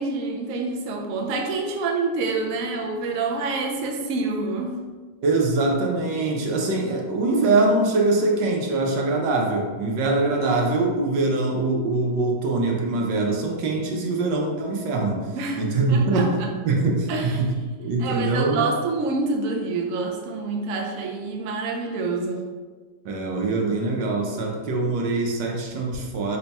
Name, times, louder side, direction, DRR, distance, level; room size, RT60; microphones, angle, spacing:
voice 1, 0.0-4.8 15.3-15.6 15.9-16.3 17.1-17.4 18.0-22.4, right 3 dB, 65° right, 1 dB, 0.9 m, -27 dB
voice 2, 5.2-17.5 17.8-18.7 23.0-26.4, right 3 dB, 85° right, 0 dB, 1.4 m, -23 dB
5.0 x 2.2 x 4.0 m, 1.4 s
omnidirectional pair, 1.8 m